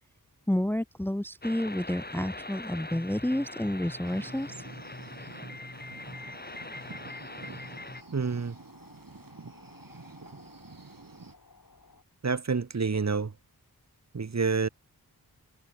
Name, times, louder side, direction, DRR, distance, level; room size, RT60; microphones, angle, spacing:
voice 1, 0.5-4.5, left 1 dB, 5° left, 0.7 m, -30 dB
sound 1, 1.4-8.0, left 2 dB, 25° left, 3.7 m, -42 dB
sound 2, 4.0-11.3, right 4 dB, 65° right, 3.7 m, -49 dB
sound 3, 6.0-12.0, left 4 dB, 60° left, 5.7 m, -56 dB
voice 2, 8.1-8.6 12.2-13.3 14.1-14.7, right 4 dB, 45° right, 1.2 m, -28 dB
wide cardioid pair, 80°, 36 cm